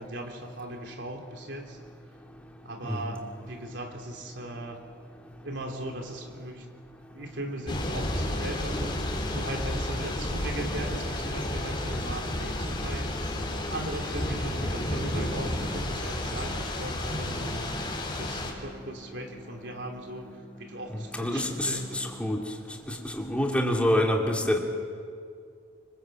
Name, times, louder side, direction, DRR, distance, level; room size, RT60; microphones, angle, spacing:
voice 1, 0.0-1.8 2.6-4.8 5.4-6.7 7.1-9.0 9.3-13.2 13.7-17.8 18.2-20.3 20.6-22.1, right 1 dB, 75° right, 2 dB, 3.3 m, -38 dB
Thunder / Rain, 7.7-18.5, left 1 dB, 25° left, 4.3 m, -31 dB
sound 1, 13.4-22.2, left 2 dB, 50° left, 4.5 m, -52 dB
voice 2, 20.9-22.5 22.9-24.6, left 1 dB, 5° left, 0 dB, 2.7 m, -27 dB
25.5 x 25.0 x 7.7 m, 2.3 s
head